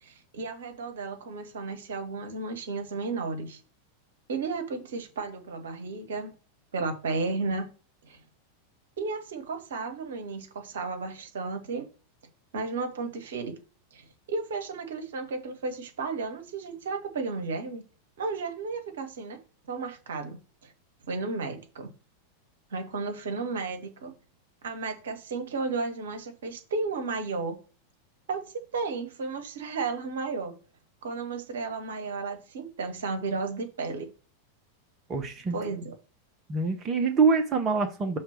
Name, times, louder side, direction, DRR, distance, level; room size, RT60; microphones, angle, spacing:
voice 1, 0.0-3.6 4.3-6.3 6.7-7.7 8.1-8.2 9.0-11.9 12.5-13.5 13.9-17.8 18.2-19.4 19.7-20.4 20.6-20.7 21.1-21.9 22.7-24.1 24.6-27.6 28.3-28.4 28.7-30.5 31.0-34.1 35.5-35.9, right 4 dB, 60° right, 6 dB, 1.3 m, -33 dB
voice 2, 35.1-35.6 36.5-38.2, right 4 dB, 25° right, 4 dB, 1.0 m, -25 dB
6.5 x 3.3 x 5.9 m, 0.36 s
figure-of-eight pair, 90°, 0 cm